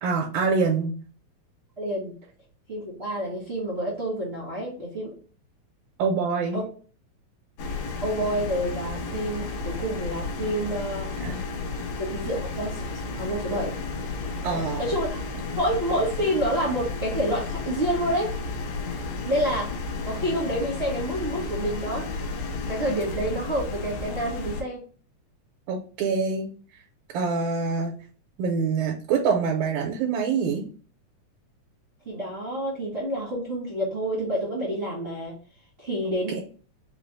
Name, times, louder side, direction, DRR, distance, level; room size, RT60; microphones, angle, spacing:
voice 1, 0.0-0.9 6.0-6.6 11.2-11.4 14.4-14.8 25.7-26.5 27.1-27.9 28.4-30.6 36.3-36.4, right 5 dB, 85° right, 1 dB, 2.0 m, -25 dB
voice 2, 1.8-2.1 2.7-5.1 6.5-6.6 8.0-11.1 12.0-12.8 13.1-13.7 14.4-15.2 15.6-18.3 19.2-19.7 20.0-22.2 22.7-24.8 32.0-35.3 35.8-36.4, right 1 dB, 45° right, -6 dB, 0.8 m, -28 dB
sound 1, 7.6-24.6, left 3 dB, 85° left, 2.1 m, -33 dB
5.1 x 2.0 x 3.9 m, 0.40 s
omnidirectional pair, 3.3 m